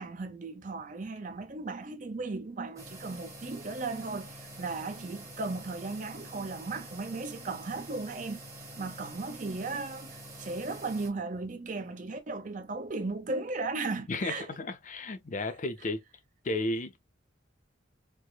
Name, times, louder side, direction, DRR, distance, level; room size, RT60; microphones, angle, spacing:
voice 1, 0.0-8.4 8.8-14.5, right 3 dB, 40° right, 0.6 m, -36 dB
sound 1, 2.8-11.1, right 1 dB, 15° right, 0.9 m, -46 dB
voice 2, 14.1-16.0 16.4-17.0, left 2 dB, 40° left, 0.6 m, -33 dB
4.6 x 2.1 x 2.3 m
head